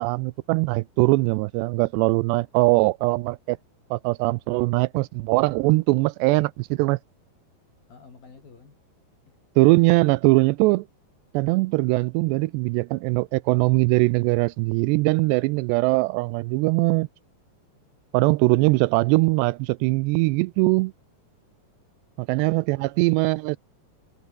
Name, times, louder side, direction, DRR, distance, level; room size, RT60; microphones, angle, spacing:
voice 1, 0.0-3.6 3.9-7.0 9.6-10.9 11.3-17.1 18.1-20.9 22.2-23.6, right 23 dB, 85° right, 2.7 m, -21 dB
voice 2, 7.9-8.8 22.3-23.1, left 5 dB, 55° left, 7.5 m, -51 dB
omnidirectional pair, 4.9 m